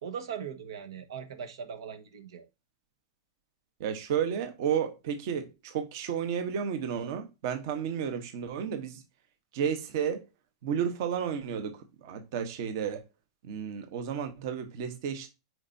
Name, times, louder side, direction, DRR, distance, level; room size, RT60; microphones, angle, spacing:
voice 1, 0.0-2.5, right 7 dB, 85° right, 1.4 m, -40 dB
voice 2, 3.8-9.0 9.5-10.2 10.6-13.0 13.4-15.3, right 8 dB, 45° right, 1.1 m, -32 dB
9.4 x 4.7 x 2.7 m
supercardioid pair, 170°, 3 cm